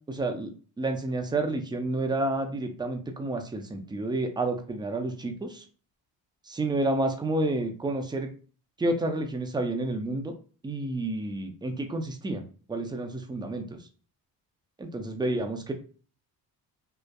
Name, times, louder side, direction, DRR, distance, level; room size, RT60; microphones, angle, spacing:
voice 1, 0.1-5.6 6.5-8.3 8.8-10.3 10.6-13.8 14.8-15.7, right 2 dB, 10° right, 4 dB, 0.4 m, -30 dB
2.5 x 2.3 x 2.2 m, 0.38 s
cardioid pair, 80°, 46 cm